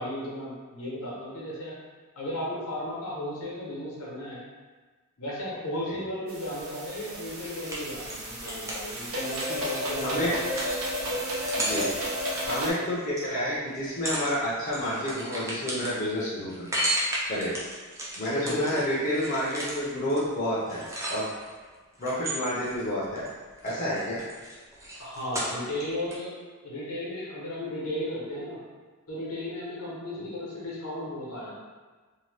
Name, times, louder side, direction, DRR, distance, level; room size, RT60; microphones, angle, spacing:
voice 1, 0.0-1.8 2.1-4.4 5.2-10.5 18.4-18.8 25.0-26.4 26.6-28.6 29.1-31.5, left 1 dB, 80° left, -5 dB, 1.0 m, -35 dB
sound 1, 6.3-12.7, equal, 70° right, 0.6 m, -32 dB
sound 2, 7.4-13.3 13.7-14.3 14.6-21.5 22.0-23.3 23.6-25.8 26.1-26.2, right 1 dB, 15° right, 0.4 m, -34 dB
voice 2, 10.0-10.3 11.6-11.9 12.5-16.7 17.3-17.5 18.2-21.3 22.0-23.3 23.6-24.2 30.1-30.2, equal, 35° left, -8 dB, 0.6 m, -29 dB
2.7 x 2.2 x 3.2 m, 1.4 s
head